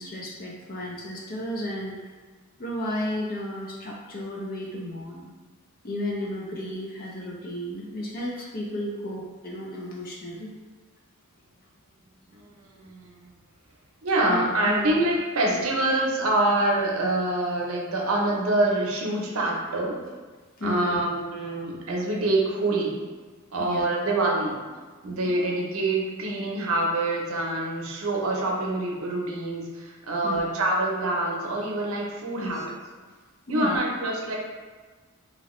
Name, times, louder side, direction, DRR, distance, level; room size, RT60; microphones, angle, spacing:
voice 1, 0.0-2.2 2.6-5.3 5.8-10.5 14.3-14.9 15.5-15.6 20.6-21.0 21.4-21.5 23.6-23.9 25.2-25.4 30.2-30.4 32.4-32.7 33.5-33.8, left 1 dB, 40° left, -3 dB, 0.5 m, -33 dB
voice 2, 12.3-13.2 14.0-20.0 20.6-22.9 23.5-24.6 25.0-32.6 33.5-34.4, right 2 dB, 70° right, -2 dB, 0.7 m, -26 dB
2.9 x 2.8 x 3.0 m, 1.4 s
head